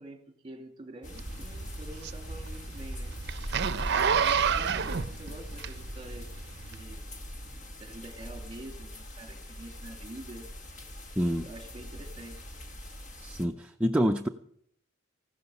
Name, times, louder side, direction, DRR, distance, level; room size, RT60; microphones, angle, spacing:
voice 1, 0.0-3.1 4.1-6.3 6.7-7.1 7.7-10.5 11.4-12.5, right 1 dB, 25° right, 3 dB, 2.4 m, -46 dB
sound 1, 1.0-13.4, equal, 35° left, 1.5 m, -41 dB
Zipper (clothing), 1.2-6.1 6.7-6.8, right 7 dB, 55° right, 0.6 m, -28 dB
voice 2, 11.2-11.5 13.1-14.3, equal, 5° right, 3 dB, 0.5 m, -27 dB
15.5 x 12.5 x 5.5 m, 0.68 s
head